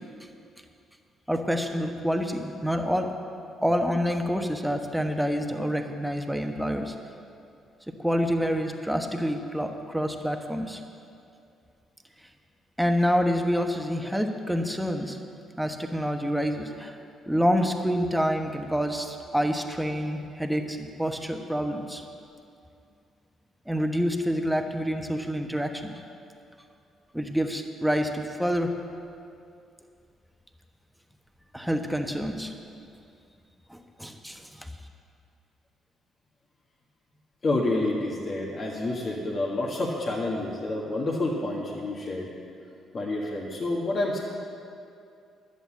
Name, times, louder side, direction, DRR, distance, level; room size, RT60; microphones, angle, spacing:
voice 1, 1.3-3.1 3.6-6.9 8.0-10.8 12.8-15.2 15.6-17.0 17.3-22.0 23.7-25.9 27.1-28.7 31.5-32.5 33.7-34.7, equal, 5° right, 4 dB, 1.3 m, -27 dB
voice 2, 37.4-42.3 42.9-44.2, left 2 dB, 45° left, -3 dB, 1.6 m, -28 dB
11.5 x 7.9 x 7.3 m, 2.5 s
hypercardioid pair, 45°, 0 cm